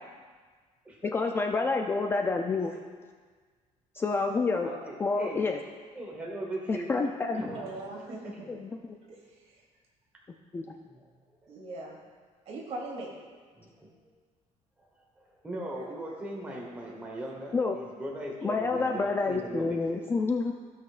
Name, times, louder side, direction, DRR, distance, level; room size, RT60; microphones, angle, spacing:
voice 1, 1.0-2.7 3.9-4.7 5.0-5.6 6.7-7.5 8.5-9.0 10.5-10.7 17.5-17.8 18.4-20.5, left 3 dB, 20° left, 3 dB, 0.3 m, -28 dB
voice 2, 4.6-5.4 5.9-6.9 7.3-7.9 8.4-8.5 10.9-11.1 11.4-11.5 13.6-13.9 14.8-20.0, right 1 dB, 10° right, -2 dB, 1.1 m, -39 dB
voice 3, 7.4-8.5 9.1-9.6 11.5-12.0 12.5-13.1, right 2 dB, 50° right, -3 dB, 2.2 m, -40 dB
16.0 x 5.7 x 2.5 m, 1.6 s
cardioid pair, 175°, 13 cm